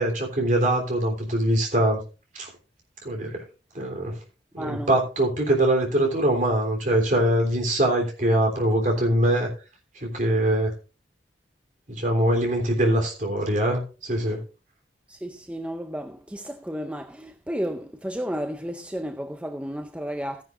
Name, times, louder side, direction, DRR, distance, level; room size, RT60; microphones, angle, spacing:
voice 1, 0.0-2.0 2.3-2.5 3.0-3.4 3.7-4.2 4.5-9.5 10.0-10.7 11.9-14.4, right 1 dB, 45° right, 3.5 m, -23 dB
voice 2, 4.6-4.9 15.1-20.4, equal, 5° right, 0.5 m, -32 dB
14.5 x 10.0 x 2.6 m
head